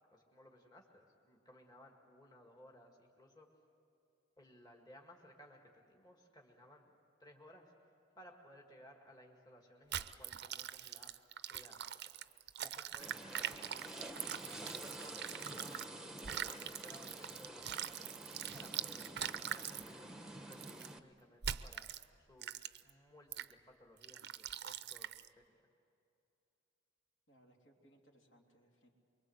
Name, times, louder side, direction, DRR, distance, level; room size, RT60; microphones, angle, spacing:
voice 1, 0.1-3.5 4.4-13.9 14.2-25.6, left 1 dB, 20° left, 0 dB, 2.0 m, -61 dB
sound 1, 9.9-15.9 16.2-19.9 20.5-20.9 21.4-22.0 22.4-22.9 23.3-23.5 24.0-25.3, right 10 dB, 55° right, 0.6 m, -43 dB
sound 2, 13.0-21.0, right 1 dB, 5° right, 1.0 m, -49 dB
voice 2, 27.3-28.9, right 1 dB, 65° left, 0 dB, 3.3 m, -67 dB
24.5 x 23.0 x 8.0 m, 2.6 s
head